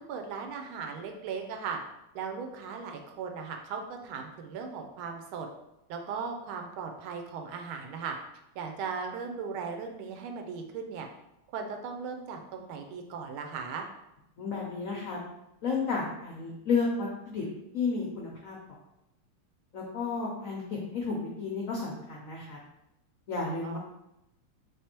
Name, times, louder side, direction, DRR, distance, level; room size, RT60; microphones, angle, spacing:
voice 1, 0.0-1.8 2.1-5.5 5.9-8.2 8.5-11.1 11.5-13.9 23.6-23.8, right 5 dB, 80° right, 4 dB, 1.4 m, -37 dB
voice 2, 14.4-15.2 15.6-17.4 17.7-18.6 19.7-22.6 23.3-23.8, left 4 dB, 75° left, -3 dB, 0.7 m, -32 dB
3.4 x 3.4 x 4.3 m, 0.86 s
omnidirectional pair, 2.4 m